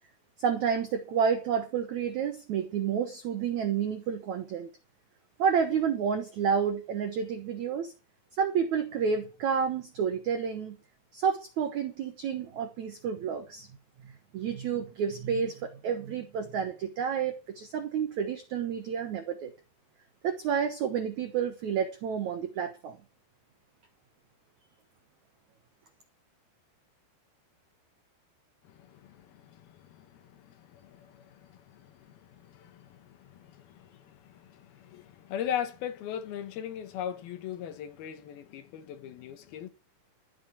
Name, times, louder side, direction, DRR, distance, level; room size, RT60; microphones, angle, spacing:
voice 1, 0.4-4.7 5.4-7.9 8.4-10.8 11.1-13.7 14.0-19.5 20.2-23.0, right 7 dB, 85° right, 1.6 m, -30 dB
voice 2, 28.6-39.7, left 9 dB, 70° left, 3.0 m, -40 dB
13.0 x 6.2 x 8.3 m
omnidirectional pair, 5.0 m